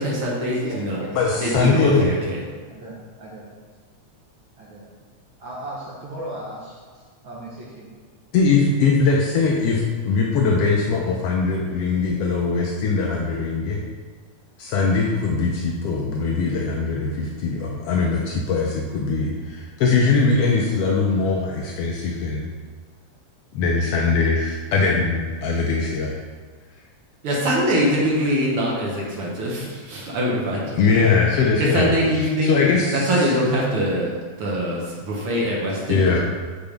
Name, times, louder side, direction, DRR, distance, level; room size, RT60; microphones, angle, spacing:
voice 1, 0.0-1.0 1.3-2.4 27.2-30.9 31.6-34.1 34.4-36.2, equal, 60° right, -4 dB, 1.7 m, -23 dB
voice 2, 0.6-1.8 2.7-3.5 4.6-4.9 5.4-7.9, right 1 dB, 75° right, -4 dB, 1.1 m, -37 dB
voice 3, 1.1-2.1 8.3-13.8 14.6-22.5 23.5-26.2 30.8-31.9 32.4-33.1 35.9-36.2, left 4 dB, 90° left, -2 dB, 1.3 m, -21 dB
6.9 x 3.9 x 5.1 m, 1.5 s
omnidirectional pair, 3.5 m